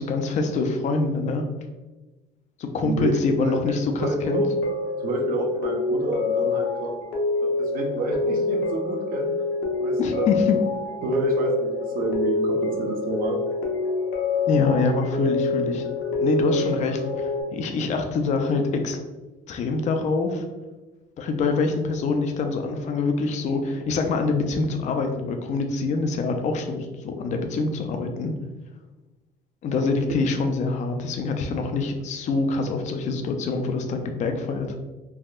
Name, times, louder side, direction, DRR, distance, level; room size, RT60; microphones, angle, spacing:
voice 1, 0.0-1.4 2.6-4.4 10.0-10.6 14.5-15.9 16.2-19.0 19.5-20.4 21.2-28.3 29.6-34.8, left 3 dB, 45° left, 5 dB, 0.4 m, -25 dB
voice 2, 2.8-4.5 5.0-6.9 7.4-9.3 9.8-10.7 11.0-13.4, right 2 dB, 60° right, 1 dB, 0.6 m, -29 dB
sound 1, 4.2-17.4, left 3 dB, 80° left, 0.7 m, -26 dB
3.4 x 2.2 x 2.4 m, 1.2 s
cardioid pair, 110°, 17 cm